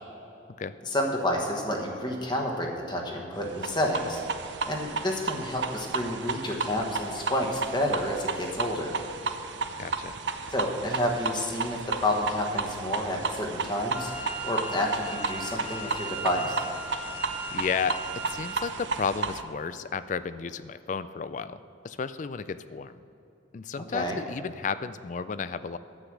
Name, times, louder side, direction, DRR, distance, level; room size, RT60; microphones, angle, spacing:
voice 1, 0.8-4.2 4.7-8.9 10.5-14.1 14.4-16.6 23.9-24.2, left 1 dB, 20° left, 1 dB, 1.3 m, -29 dB
sound 1, 3.5-19.4, right 4 dB, 65° right, 0.6 m, -33 dB
voice 2, 9.8-10.1 17.5-22.9 23.5-25.8, left 5 dB, 40° left, 14 dB, 0.3 m, -33 dB
Wind instrument woodwind instrument, 13.9-18.7, right 1 dB, 5° right, 0.6 m, -38 dB
9.8 x 8.1 x 6.1 m, 2.9 s
head